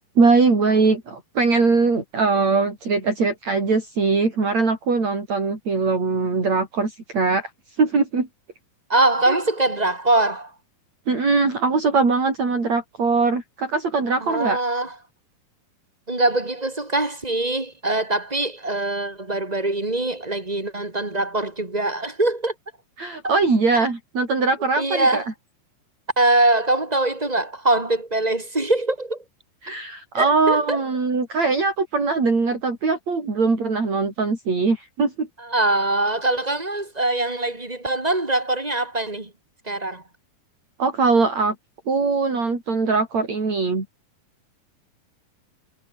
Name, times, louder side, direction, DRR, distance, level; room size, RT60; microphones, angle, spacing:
voice 1, 0.2-7.5 7.8-8.3 9.3-9.4 11.1-14.6 23.0-25.2 29.6-35.3 40.8-41.6 41.9-43.9, right 4 dB, 50° right, 7.1 m, -21 dB
voice 2, 8.9-10.5 14.2-14.9 16.1-22.5 23.2-23.3 24.8-25.3 26.2-29.2 30.1-30.8 35.4-39.3 39.6-40.0, right 2 dB, 15° right, 2.2 m, -23 dB
omnidirectional pair, 4.0 m